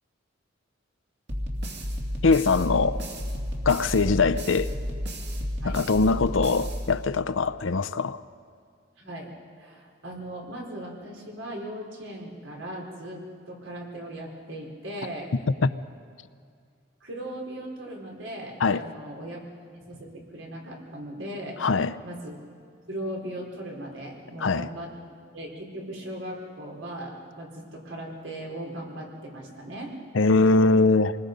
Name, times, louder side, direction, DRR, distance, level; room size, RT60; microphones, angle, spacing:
sound 1, 1.3-7.4, equal, 60° right, 2.5 m, -32 dB
voice 1, 2.2-3.0 3.7-4.7 5.6-8.2 15.6-15.7 18.6-18.8 21.6-22.0 24.4-24.7 30.1-31.2, left 3 dB, 85° left, 0.7 m, -22 dB
voice 2, 9.0-9.3 9.6-13.2 13.5-15.3 17.0-19.4 19.7-21.7 22.0-22.4 22.9-24.9 25.3-30.0, right 1 dB, 85° right, 4.3 m, -38 dB
27.5 x 20.0 x 5.3 m
head